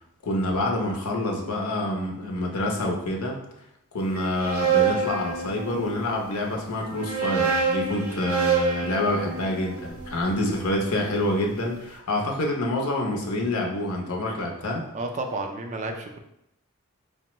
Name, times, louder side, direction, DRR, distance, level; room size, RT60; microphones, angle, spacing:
voice 1, 0.2-3.4 3.9-14.9, left 1 dB, 80° left, 0 dB, 0.7 m, -27 dB
sound 1, 4.2-6.1 6.8-11.0, right 6 dB, 75° right, 0.8 m, -27 dB
voice 2, 14.9-16.2, right 2 dB, 35° right, 3 dB, 0.4 m, -31 dB
4.9 x 2.2 x 3.0 m, 0.81 s
head